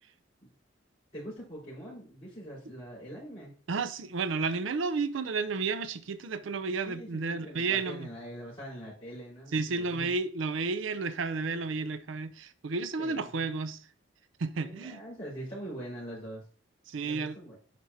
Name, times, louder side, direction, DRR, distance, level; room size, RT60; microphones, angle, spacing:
voice 1, 1.1-3.5 6.8-10.1 13.0-13.5 14.6-16.4 17.0-17.6, right 1 dB, 30° left, 3.8 m, -43 dB
voice 2, 3.7-8.1 9.5-13.9 14.4-15.0 16.9-17.4, right 4 dB, 85° right, 0.5 m, -32 dB
10.0 x 4.5 x 2.7 m
head